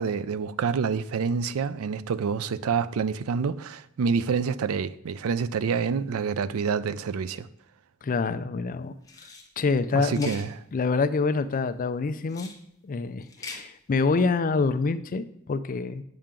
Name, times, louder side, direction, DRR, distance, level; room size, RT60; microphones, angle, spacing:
voice 1, 0.0-7.5 9.9-10.5, right 6 dB, 70° right, 0.4 m, -27 dB
voice 2, 8.0-8.9 9.6-10.3 10.7-12.5 12.8-16.0, left 4 dB, 40° left, 0.4 m, -26 dB
sound 1, 9.0-9.5 10.1-10.5 12.3-12.6 13.2-13.6, left 4 dB, 15° left, 1.0 m, -41 dB
8.9 x 5.6 x 3.7 m
head